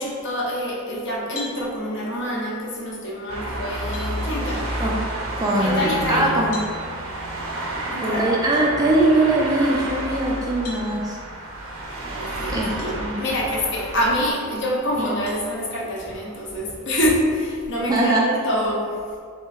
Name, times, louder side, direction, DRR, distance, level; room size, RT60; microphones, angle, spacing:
voice 1, 0.0-4.7 5.6-6.4 7.9-8.3 12.2-18.9, equal, 55° left, -4 dB, 0.7 m, -26 dB
sound 1, 1.3-1.6 3.3-3.4 3.9-4.1 6.5-6.7 8.5-8.7 10.6-10.9 12.8-12.9 13.6-13.7 15.3-15.5, left 3 dB, 90° left, 1.1 m, -37 dB
sound 2, 3.3-14.3, right 1 dB, 70° right, 0.6 m, -30 dB
voice 2, 5.4-6.6 8.0-11.2 12.5-13.2 15.0-15.1 17.9-18.3, right 2 dB, 15° right, -3 dB, 0.3 m, -21 dB
sound 3, 12.4-17.5, equal, 30° left, 1.0 m, -41 dB
3.2 x 2.9 x 3.6 m, 2.1 s
head